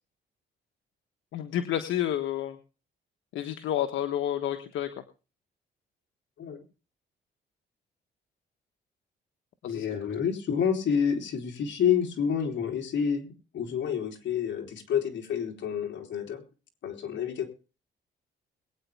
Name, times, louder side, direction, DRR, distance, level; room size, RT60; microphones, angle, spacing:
voice 1, 1.3-2.6 3.3-4.9 9.6-9.9, left 11 dB, 80° left, 8 dB, 1.3 m, -30 dB
voice 2, 9.6-16.4 16.8-17.5, left 7 dB, 65° left, 4 dB, 3.6 m, -29 dB
22.0 x 9.4 x 3.5 m, 0.34 s
cardioid pair, 90°, 20 cm